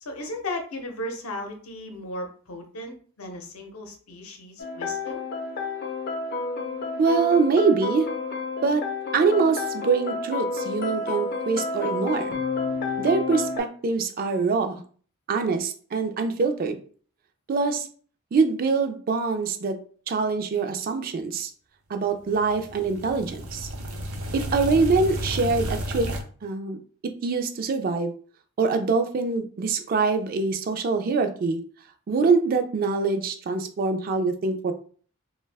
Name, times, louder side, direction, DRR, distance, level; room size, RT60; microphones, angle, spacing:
voice 1, 0.0-5.2, left 1 dB, 85° left, 4 dB, 0.7 m, -36 dB
sound 1, 4.6-13.6, left 3 dB, 45° left, 0.5 m, -30 dB
voice 2, 7.0-8.1 8.6-8.9 9.1-12.3 13.0-14.8 15.3-16.8 17.5-17.9 18.3-19.8 20.1-21.5 21.9-23.7 24.3-26.1 26.4-26.8 27.0-28.1 28.6-31.6 32.1-34.7, right 4 dB, 45° right, 7 dB, 0.3 m, -24 dB
sound 2, 22.3-26.2, equal, 85° right, 0.6 m, -32 dB
2.5 x 2.2 x 3.3 m, 0.44 s
head